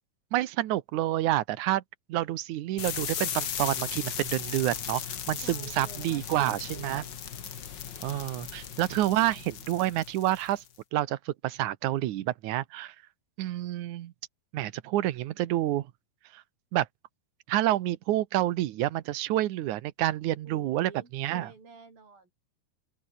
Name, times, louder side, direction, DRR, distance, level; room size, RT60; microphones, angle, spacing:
voice 1, 0.3-1.8 2.1-5.0 5.3-7.0 8.0-10.6 10.9-12.9 13.4-14.1 14.5-15.9 16.3-16.4 16.7-16.9 17.5-21.5, right 14 dB, 70° right, 2.3 m, -28 dB
sound 1, 2.8-10.7, left 8 dB, 50° left, 1.4 m, -37 dB
voice 2, 5.4-7.1 20.5-22.3, right 4 dB, 85° right, 9.0 m, -49 dB
open air
omnidirectional pair, 4.0 m